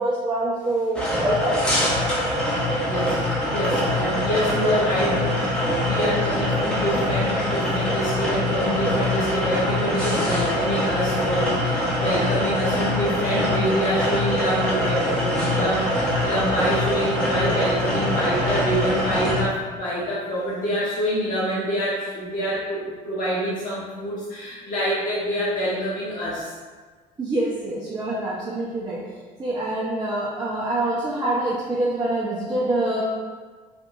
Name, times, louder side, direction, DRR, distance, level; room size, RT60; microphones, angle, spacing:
voice 1, 0.0-1.6 3.9-4.0 27.2-29.0 29.4-33.0, right 1 dB, 20° right, -6 dB, 0.7 m, -25 dB
sound 1, 0.9-19.4, left 1 dB, 5° left, 1.2 m, -24 dB
voice 2, 2.9-26.5, equal, 40° left, -9 dB, 1.0 m, -26 dB
3.4 x 2.6 x 2.6 m, 1.5 s
hypercardioid pair, 65°, 21 cm